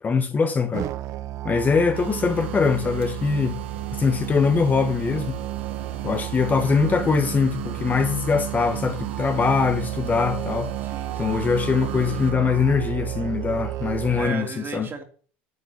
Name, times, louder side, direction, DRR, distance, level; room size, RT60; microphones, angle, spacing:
voice 1, 0.0-0.9 1.4-3.6 4.0-5.4 6.0-10.7 11.2-14.9, left 5 dB, 25° left, 1.3 m, -22 dB
Musical instrument, 0.7-14.3, right 14 dB, 55° right, 0.6 m, -32 dB
sound 1, 1.9-12.3, right 13 dB, 90° right, 1.1 m, -36 dB
voice 2, 10.8-11.5 13.2-13.3 14.1-15.0, right 5 dB, 35° right, 3.0 m, -36 dB
9.8 x 4.9 x 6.9 m
supercardioid pair, 90°, 6 cm